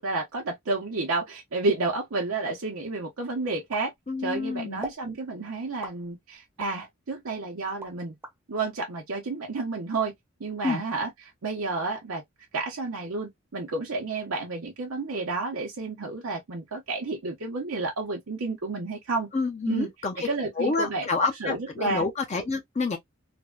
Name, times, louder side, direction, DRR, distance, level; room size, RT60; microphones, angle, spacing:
voice 1, 0.0-3.9 4.2-8.1 8.5-10.1 10.4-11.1 11.4-12.2 12.5-19.3 19.7-19.9 20.2-21.1 21.4-22.1, right 3 dB, 80° right, 0.7 m, -30 dB
Bubble Pops, 3.7-4.4 4.8-5.1 5.8-6.8 7.3-8.4, right 1 dB, 10° right, 0.6 m, -40 dB
voice 2, 4.1-4.8 10.6-10.8 19.3-20.3 20.6-23.0, left 3 dB, 30° left, 0.5 m, -28 dB
3.3 x 2.1 x 2.3 m
head